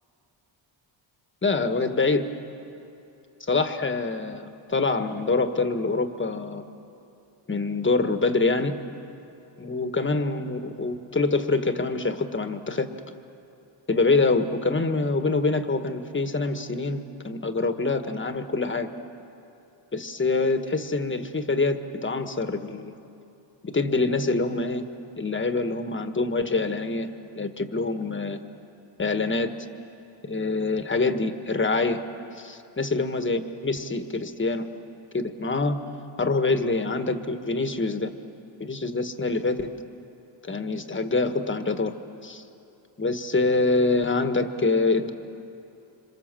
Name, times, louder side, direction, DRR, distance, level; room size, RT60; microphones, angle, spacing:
voice 1, 1.4-2.3 3.4-6.6 7.5-8.7 9.6-12.9 13.9-18.9 19.9-22.9 23.6-24.8 25.2-27.1 27.3-28.4 29.0-29.5 30.2-32.0 32.4-34.6 35.1-35.8 36.2-38.1 38.6-39.7 40.4-41.9 42.2-42.4 43.0-45.1, left 3 dB, 25° left, 8 dB, 1.4 m, -25 dB
27.0 x 26.0 x 7.6 m, 2.8 s
cardioid pair, 110°, 48 cm